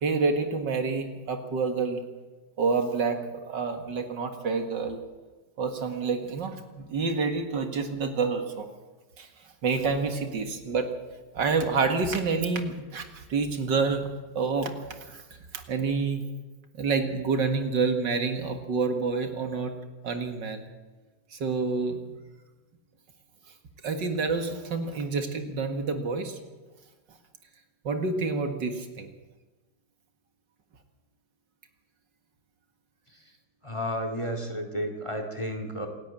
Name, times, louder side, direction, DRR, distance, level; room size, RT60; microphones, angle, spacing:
voice 1, 0.0-2.0 2.6-5.0 5.6-8.7 9.2-9.3 9.6-10.9 11.3-14.1 14.4-14.7 15.1-15.2 15.5-16.2 16.7-19.7 20.0-20.7 21.3-22.2 23.8-26.4 27.8-29.1, right 4 dB, 75° right, 6 dB, 2.5 m, -28 dB
voice 2, 33.6-35.9, equal, 15° left, 5 dB, 2.2 m, -32 dB
26.5 x 11.5 x 9.0 m, 1.2 s
omnidirectional pair, 1.9 m